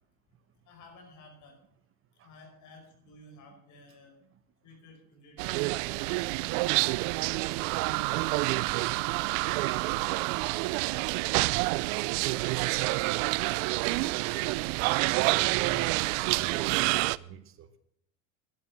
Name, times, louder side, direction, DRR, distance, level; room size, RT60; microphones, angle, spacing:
voice 1, 0.6-1.6 2.2-4.2 4.6-5.6 5.9-6.9 7.8-11.6 11.9-12.3, left 2 dB, 45° left, 3 dB, 5.1 m, -55 dB
sound 1, 5.4-17.2, right 22 dB, 65° right, 0.5 m, -28 dB
voice 2, 15.3-16.0 16.3-17.8, right 8 dB, 30° right, 11 dB, 1.0 m, -45 dB
11.5 x 11.5 x 5.3 m, 0.70 s
supercardioid pair, 135°, 41 cm